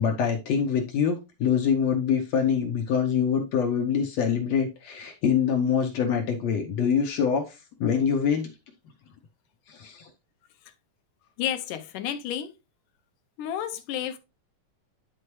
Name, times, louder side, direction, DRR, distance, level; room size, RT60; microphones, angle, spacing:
voice 1, 0.0-8.5 9.7-10.1, left 7 dB, 65° left, 2.0 m, -25 dB
voice 2, 11.4-12.5 13.4-14.2, left 10 dB, 85° left, 2.4 m, -31 dB
11.0 x 4.4 x 3.1 m
omnidirectional pair, 3.7 m